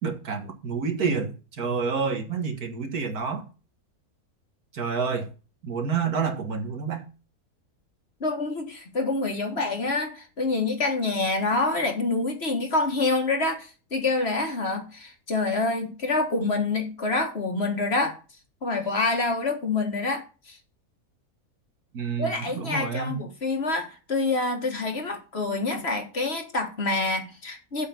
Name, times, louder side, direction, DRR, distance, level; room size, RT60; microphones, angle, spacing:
voice 1, 0.0-3.4 4.7-5.3 5.6-7.1 21.9-23.2, right 5 dB, 70° right, 2.1 m, -28 dB
voice 2, 8.2-18.2 18.6-20.6 22.2-27.9, left 3 dB, 45° left, 1.7 m, -27 dB
7.9 x 5.8 x 6.9 m
omnidirectional pair, 1.6 m